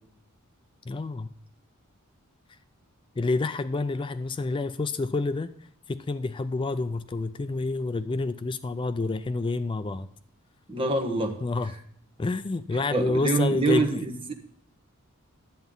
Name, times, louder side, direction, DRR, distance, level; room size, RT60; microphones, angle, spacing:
voice 1, 0.9-1.3 3.2-5.5 5.9-10.1 11.4-11.7 12.2-14.0, left 3 dB, 20° left, 13 dB, 0.3 m, -28 dB
voice 2, 10.7-11.4 12.9-14.3, right 3 dB, 25° right, 3 dB, 1.3 m, -25 dB
11.0 x 8.1 x 3.8 m, 0.65 s
head